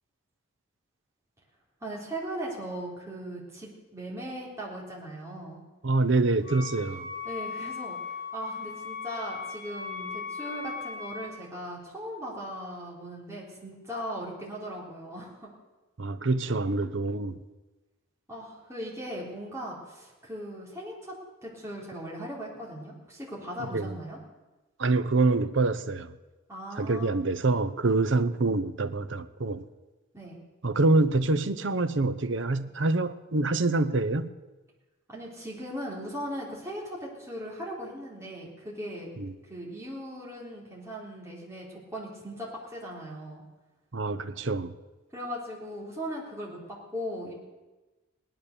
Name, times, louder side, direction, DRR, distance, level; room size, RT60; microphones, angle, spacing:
voice 1, 1.8-5.6 7.2-15.5 18.3-21.1 21.4-24.2 26.5-27.2 30.1-30.4 35.1-39.1 39.4-43.4 45.1-47.3, equal, 15° right, 3.7 m, -38 dB
voice 2, 5.8-7.1 16.0-17.4 23.6-23.9 24.8-26.1 26.8-29.6 30.6-34.3 39.2-39.3 43.9-44.7, right 3 dB, 60° right, 0.8 m, -26 dB
Wind instrument woodwind instrument, 6.4-11.4, left 5 dB, 75° left, 3.0 m, -38 dB
17.5 x 11.0 x 6.7 m
head